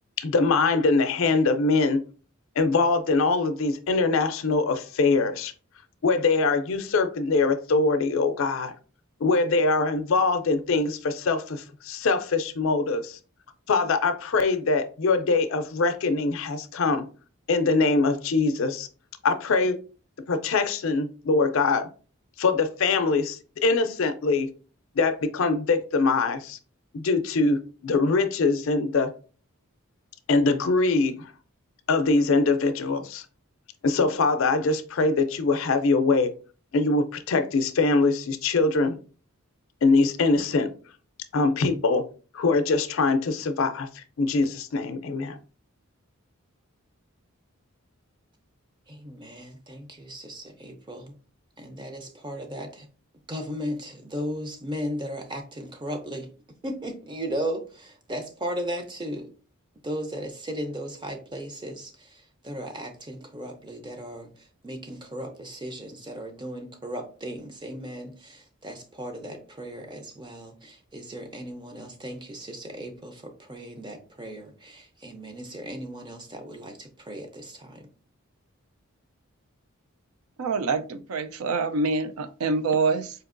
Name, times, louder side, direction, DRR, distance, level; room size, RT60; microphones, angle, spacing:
voice 1, 0.2-2.0 2.6-5.5 6.0-8.7 9.2-13.2 13.7-17.0 17.5-18.9 19.2-19.8 20.3-21.9 22.4-24.5 25.0-26.6 26.9-29.1 30.3-31.3 31.9-33.2 33.8-36.3 36.7-39.0 39.8-40.7 41.3-42.1 42.3-45.4, left 3 dB, 60° left, 0.4 m, -23 dB
voice 2, 48.9-51.2 51.6-52.9 53.3-56.3 56.6-59.3 59.8-77.9, equal, 20° right, 0.5 m, -36 dB
voice 3, 80.4-83.1, right 4 dB, 75° right, 0.4 m, -26 dB
4.4 x 2.8 x 2.5 m
head